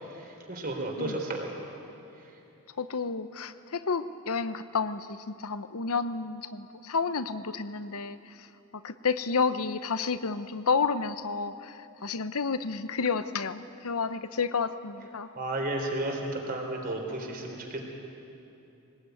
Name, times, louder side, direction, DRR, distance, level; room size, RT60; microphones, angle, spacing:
voice 1, 0.5-1.5 15.3-17.8, right 1 dB, 40° right, 2 dB, 3.5 m, -32 dB
voice 2, 2.8-8.3 8.8-15.3, left 5 dB, 75° left, 12 dB, 0.9 m, -30 dB
22.0 x 19.0 x 9.3 m, 2.8 s
head